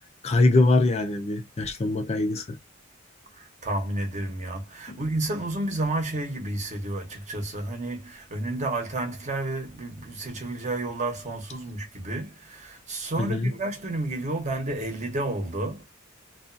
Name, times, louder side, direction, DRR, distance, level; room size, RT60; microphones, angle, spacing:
voice 1, 0.2-2.6 4.9-5.0 13.2-13.5, left 2 dB, 30° left, 0.4 m, -23 dB
voice 2, 3.6-15.8, right 2 dB, 35° right, 0.9 m, -31 dB
2.5 x 2.3 x 2.4 m
head